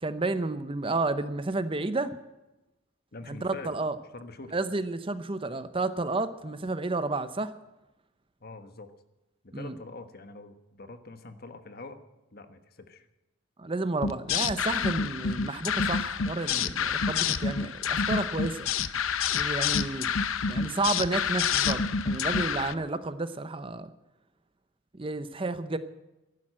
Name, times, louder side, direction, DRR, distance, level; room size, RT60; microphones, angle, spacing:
voice 1, 0.0-2.1 3.3-4.0 4.5-7.5 9.5-9.7 13.6-18.7 19.3-20.1 20.5-23.9 24.9-25.8, right 3 dB, 25° right, 12 dB, 0.7 m, -31 dB
voice 2, 3.1-3.8 4.1-4.6 8.4-8.9 9.4-12.0 12.3-13.1 22.7-22.9, left 3 dB, 50° left, 9 dB, 1.3 m, -44 dB
sound 1, 14.0-22.7, left 6 dB, 75° left, 0.7 m, -28 dB
14.5 x 11.5 x 7.6 m, 0.98 s
head